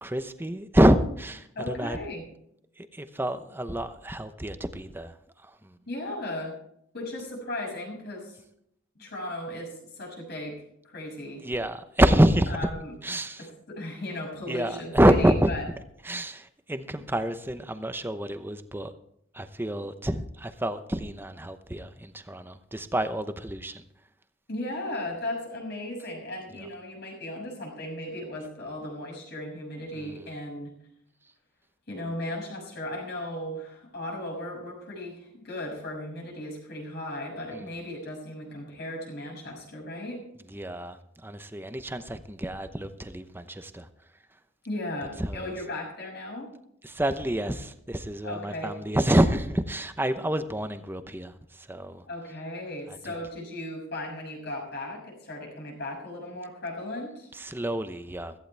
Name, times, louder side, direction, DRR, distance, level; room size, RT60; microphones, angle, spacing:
voice 1, 0.0-2.0 2.9-5.1 11.4-12.5 13.0-13.4 14.5-15.5 16.1-18.9 19.3-23.8 37.5-37.6 40.5-41.0 41.2-43.9 45.2-45.5 46.8-51.3 51.7-52.0 57.4-58.3, right 1 dB, 10° right, 10 dB, 0.8 m, -27 dB
voice 2, 1.5-2.2 5.9-6.6 6.9-8.4 9.0-10.6 10.9-11.4 12.5-12.9 13.4-15.6 16.9-17.0 24.5-30.7 31.9-40.2 44.6-46.5 48.2-48.7 52.1-57.3, left 1 dB, 55° left, -1 dB, 6.4 m, -36 dB
17.0 x 14.5 x 3.4 m, 0.73 s
head